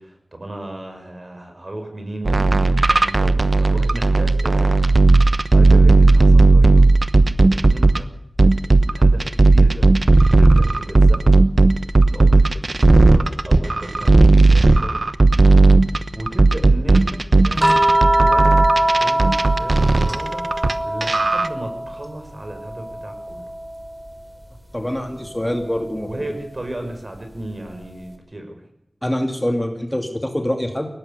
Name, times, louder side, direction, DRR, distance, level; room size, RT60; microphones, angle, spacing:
voice 1, 0.0-4.8 5.2-6.9 7.5-8.1 8.9-9.9 10.4-11.3 12.1-15.0 16.1-17.9 18.2-18.6 19.0-20.5 20.8-23.4 25.1-25.2 26.1-28.6, right 1 dB, 40° right, 5 dB, 6.1 m, -34 dB
sound 1, 2.3-8.0 8.4-20.7 21.0-21.5, right 3 dB, 60° right, 1.0 m, -14 dB
sound 2, 17.6-22.1 22.4-24.1 25.6-25.8, right 1 dB, 15° right, 3.9 m, -21 dB
voice 2, 24.7-26.2 29.0-30.9, left 1 dB, 15° left, 4 dB, 2.6 m, -24 dB
22.0 x 17.5 x 6.8 m, 0.78 s
wide cardioid pair, 65°, 0 cm